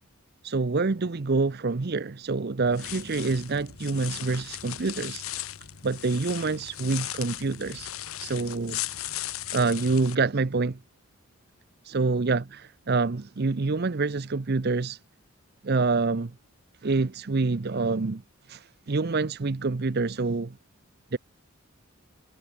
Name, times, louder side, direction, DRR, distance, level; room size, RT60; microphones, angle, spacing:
voice 1, 0.4-5.2 5.8-7.9 8.2-8.8 9.5-10.8 11.8-12.4 12.9-15.0 15.6-16.3 16.8-18.2 18.5-20.6 21.1-21.2, right 3 dB, 50° right, 0.7 m, -26 dB
sound 1, 2.7-10.2, left 12 dB, 80° left, 1.4 m, -37 dB
head